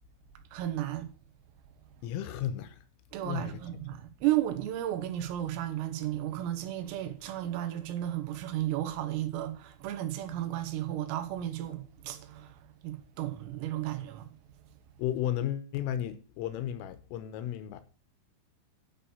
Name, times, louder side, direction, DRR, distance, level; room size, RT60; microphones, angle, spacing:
voice 1, 0.5-1.1 3.1-14.3, right 13 dB, 85° right, 3.9 m, -33 dB
voice 2, 2.0-2.9 3.2-3.6 15.0-17.8, left 11 dB, 85° left, 3.4 m, -34 dB
9.9 x 6.4 x 6.9 m
omnidirectional pair, 5.9 m